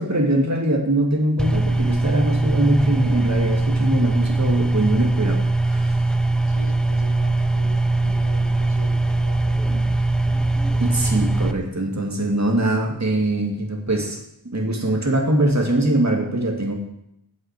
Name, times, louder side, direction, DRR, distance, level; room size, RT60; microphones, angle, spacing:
voice 1, 0.0-5.4 5.7-6.0 10.8-14.2 14.5-16.7, right 1 dB, 40° right, 1 dB, 2.5 m, -22 dB
sound 1, 1.4-11.5, right 2 dB, ahead, 0.7 m, -21 dB
voice 2, 6.5-9.9, right 3 dB, 85° right, 1 dB, 1.8 m, -39 dB
9.3 x 7.8 x 8.5 m, 0.80 s
wide cardioid pair, 80°, 43 cm